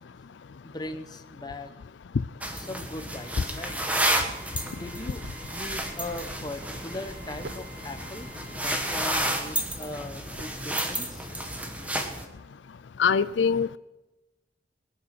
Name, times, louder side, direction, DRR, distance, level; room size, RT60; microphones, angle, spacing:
voice 1, 0.6-1.7 2.5-3.9 4.7-5.2 5.5-11.3, left 2 dB, 20° left, 7 dB, 1.1 m, -39 dB
sound 1, 2.4-12.3, right 1 dB, 10° right, 1.4 m, -31 dB
Drill, 3.1-9.1, equal, 50° right, 4.6 m, -51 dB
sound 2, 5.2-11.2, right 2 dB, 70° right, 1.0 m, -47 dB
voice 2, 13.0-13.8, left 6 dB, 80° left, 15 dB, 0.4 m, -23 dB
20.5 x 9.2 x 6.0 m, 1.1 s
head